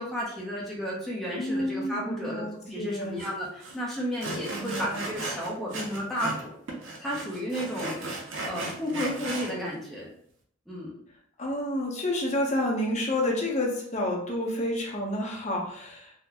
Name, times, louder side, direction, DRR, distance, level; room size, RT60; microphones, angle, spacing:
voice 1, 0.0-6.6 7.0-8.0 8.4-10.1 10.7-10.9, equal, ahead, -5 dB, 0.7 m, -33 dB
voice 2, 1.4-3.2 4.5-5.0 11.4-16.1, left 1 dB, 35° left, -1 dB, 0.8 m, -29 dB
Sawing, 3.2-3.3 3.6-3.8 4.2-6.4 6.7-9.5, right 2 dB, 80° right, 0.7 m, -36 dB
3.8 x 2.1 x 2.8 m, 0.64 s
head